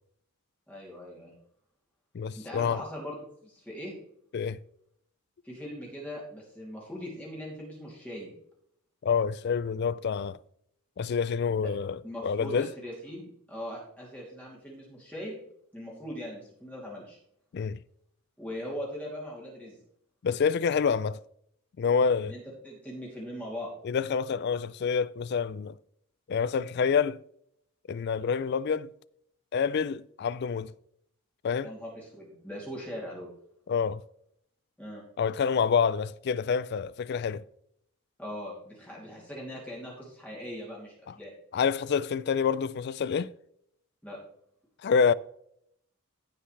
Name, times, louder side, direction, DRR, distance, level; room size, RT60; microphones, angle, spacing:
voice 1, 0.7-1.3 2.3-4.0 5.4-8.3 11.5-11.6 12.0-15.4 15.7-17.2 18.4-19.8 22.2-22.4 22.6-23.7 31.6-33.3 34.8-35.0 38.2-41.3 44.0-44.2, equal, 5° left, 2.8 m, -40 dB
voice 2, 2.1-2.8 4.3-4.6 9.0-10.4 11.0-12.7 17.5-17.8 20.2-21.2 21.8-22.3 23.8-25.7 26.3-27.2 27.9-28.9 29.5-30.7 31.4-31.7 33.7-34.0 35.2-37.4 41.5-43.3 44.8-45.1, left 6 dB, 50° left, 0.3 m, -27 dB
16.0 x 5.6 x 3.2 m
head